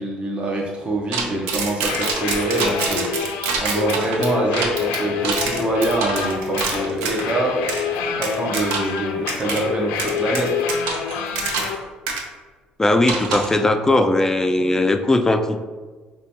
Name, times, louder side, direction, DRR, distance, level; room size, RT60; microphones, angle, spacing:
voice 1, 0.0-3.1 3.3-7.6 8.2-10.6, right 2 dB, 35° right, -1 dB, 0.7 m, -25 dB
sound 1, 1.1-7.3 7.7-7.8 8.2-9.0 9.3-9.6 10.0-11.8 12.1-12.2 13.1-13.6, right 5 dB, 90° right, 0.5 m, -26 dB
sound 2, 1.8-11.8, left 6 dB, 90° left, 0.4 m, -27 dB
voice 2, 12.8-15.6, left 2 dB, 15° left, 7 dB, 0.3 m, -18 dB
5.0 x 2.3 x 2.8 m, 1.4 s
supercardioid pair, 80°, 3 cm